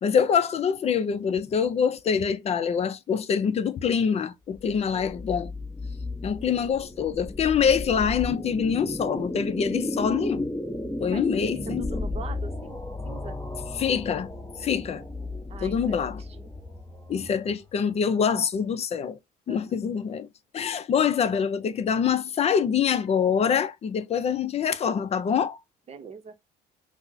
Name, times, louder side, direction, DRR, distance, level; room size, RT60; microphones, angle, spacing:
voice 1, 0.0-5.5 6.2-10.5 11.0-11.9 13.8-14.3 14.6-15.1 15.6-16.2 17.1-19.2 19.5-20.3 20.5-25.6, left 7 dB, 40° left, 0.5 m, -25 dB
sound 1, 4.5-17.7, left 2 dB, 10° left, 1.0 m, -34 dB
voice 2, 11.7-13.4 15.5-16.5 19.5-19.9 21.0-21.1 25.9-26.3, right 5 dB, 35° right, 0.7 m, -43 dB
5.8 x 2.1 x 2.6 m
cardioid pair, 110°, 17 cm